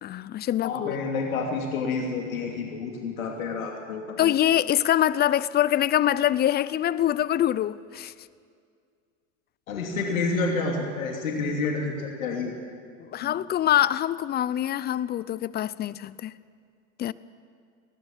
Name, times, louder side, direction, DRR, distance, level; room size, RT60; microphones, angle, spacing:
voice 1, 0.0-1.0 4.2-8.1 13.0-16.4 17.0-17.1, left 12 dB, 25° left, 0.5 m, -24 dB
voice 2, 0.6-4.3 9.7-12.5 13.2-13.3, left 4 dB, 85° left, 2.9 m, -29 dB
21.5 x 17.5 x 7.4 m
hypercardioid pair, 100°, 40 cm